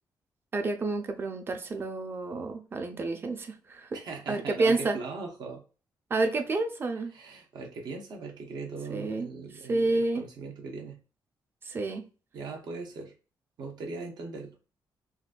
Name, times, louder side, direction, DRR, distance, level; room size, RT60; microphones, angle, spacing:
voice 1, 0.5-4.0 4.3-5.0 6.1-7.1 8.9-9.3 9.7-10.3 11.6-12.0, right 3 dB, 30° right, 6 dB, 0.4 m, -29 dB
voice 2, 3.9-5.6 7.1-11.0 12.3-13.1 13.6-14.5, right 4 dB, 65° right, 1 dB, 0.7 m, -39 dB
3.8 x 2.2 x 2.4 m, 0.34 s
wide cardioid pair, 160°, 8 cm